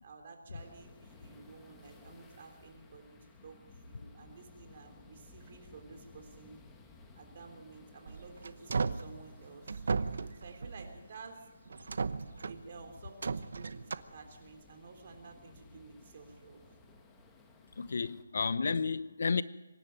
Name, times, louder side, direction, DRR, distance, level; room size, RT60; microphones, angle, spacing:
voice 1, 0.0-6.6 7.1-9.8 10.3-11.5 12.4-16.8, right 4 dB, 35° right, 3.5 m, -52 dB
sound 1, 0.6-18.2, left 3 dB, 5° left, 1.3 m, -59 dB
sound 2, 8.1-9.1 9.7-11.0 11.7-12.7 13.2-13.9, right 4 dB, 60° right, 0.9 m, -35 dB
voice 2, 17.8-19.4, left 5 dB, 55° left, 0.7 m, -31 dB
24.5 x 11.0 x 9.4 m
hypercardioid pair, 170°, 0 cm